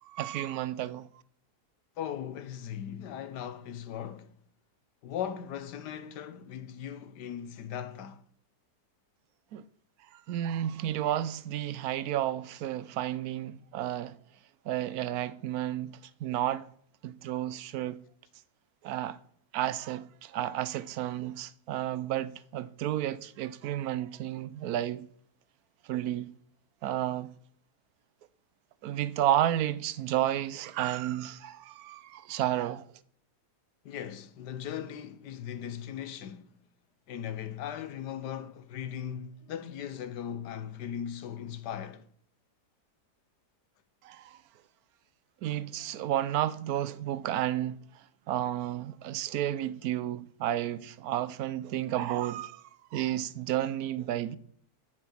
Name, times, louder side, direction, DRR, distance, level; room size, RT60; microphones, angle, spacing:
voice 1, 0.0-1.1 9.5-9.6 10.1-14.2 14.6-16.7 17.0-18.0 18.8-19.2 19.5-25.1 25.8-26.3 26.8-27.3 28.8-32.9 44.0-44.4 45.4-54.4, right 12 dB, 70° right, 1.0 m, -32 dB
voice 2, 2.0-4.3 5.0-8.2 33.8-36.5 37.1-42.1, left 9 dB, 80° left, 1.4 m, -38 dB
9.7 x 6.2 x 7.4 m
omnidirectional pair, 1.8 m